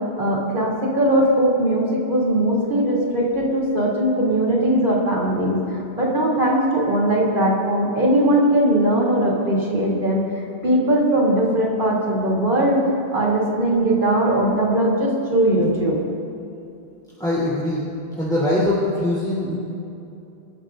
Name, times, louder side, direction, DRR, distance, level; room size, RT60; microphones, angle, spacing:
voice 1, 0.2-10.2 10.6-12.8 13.1-16.0, right 1 dB, 55° right, -4 dB, 3.6 m, -19 dB
voice 2, 17.2-17.9 18.2-19.6, left 1 dB, 5° left, -11 dB, 3.7 m, -22 dB
28.0 x 14.5 x 2.7 m, 2.7 s
omnidirectional pair, 1.0 m